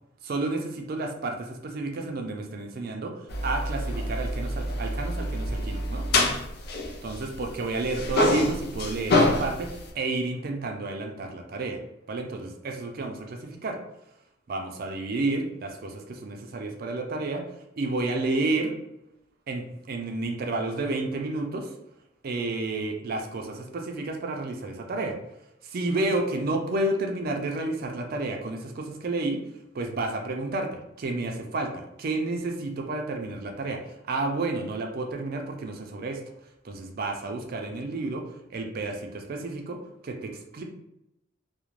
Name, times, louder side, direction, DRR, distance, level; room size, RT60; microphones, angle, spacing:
voice 1, 0.2-3.1 3.4-6.1 7.0-11.8 12.1-13.8 14.5-17.4 17.8-18.8 19.5-21.7 22.2-25.2 25.6-29.4 29.7-33.8 34.1-36.2 36.6-38.2 38.5-40.6, right 2 dB, 50° right, 3 dB, 0.4 m, -31 dB
sound 1, 3.3-7.5 7.8-9.9, left 1 dB, 55° left, 0.4 m, -26 dB
2.4 x 2.0 x 3.0 m, 0.84 s
head